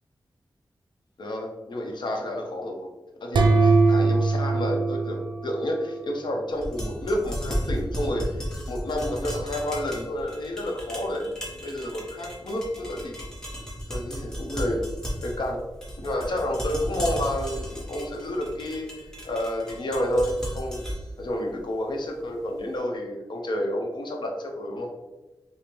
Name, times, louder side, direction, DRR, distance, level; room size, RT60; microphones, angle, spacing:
voice 1, 1.2-2.9 3.2-8.2 8.7-11.3 11.6-13.2 13.9-14.9 15.2-15.6 16.0-18.9 19.2-20.9 21.2-24.9, left 1 dB, 75° left, 1 dB, 0.7 m, -30 dB
sound 1, 3.3-6.1, right 3 dB, 85° right, 0.4 m, -21 dB
sound 2, 6.5-22.6, equal, 5° left, 1.0 m, -35 dB
5.1 x 2.1 x 2.9 m, 1.1 s
wide cardioid pair, 80°, 8 cm